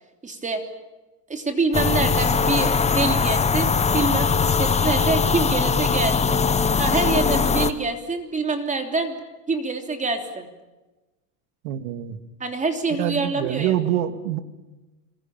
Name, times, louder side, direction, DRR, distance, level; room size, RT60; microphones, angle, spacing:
voice 1, 0.2-0.6 1.3-6.4 6.8-9.2 9.5-10.5 12.4-13.7, right 3 dB, 15° right, 5 dB, 3.2 m, -26 dB
sound 1, 1.7-7.7, left 5 dB, 15° left, 1.2 m, -21 dB
voice 2, 11.6-12.2 12.9-14.4, right 12 dB, 70° right, 9 dB, 2.6 m, -25 dB
27.0 x 23.0 x 9.1 m, 1.1 s
supercardioid pair, 135°, 48 cm